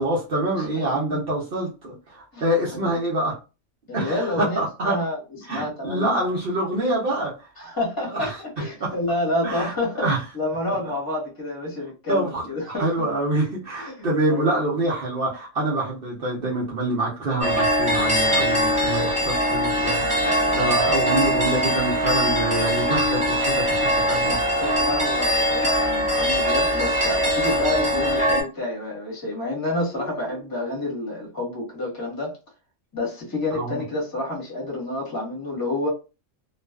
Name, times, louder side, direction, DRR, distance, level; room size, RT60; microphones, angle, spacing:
voice 1, 0.0-3.4 3.9-5.0 5.5-7.5 8.1-8.4 8.8-8.9 9.4-10.2 10.7-10.8 12.1-20.1 20.5-24.4 29.9-30.3 33.5-33.8, right 1 dB, 55° right, 0.7 m, -26 dB
voice 2, 3.9-4.6 4.8-5.2 5.5-6.3 7.6-10.0 10.3-12.9 13.8-14.6 20.5-20.9 24.6-32.4 32.9-35.9, left 2 dB, 20° left, 0.9 m, -29 dB
sound 1, 17.4-28.4, equal, 10° right, 0.4 m, -22 dB
2.4 x 2.3 x 2.2 m
omnidirectional pair, 1.4 m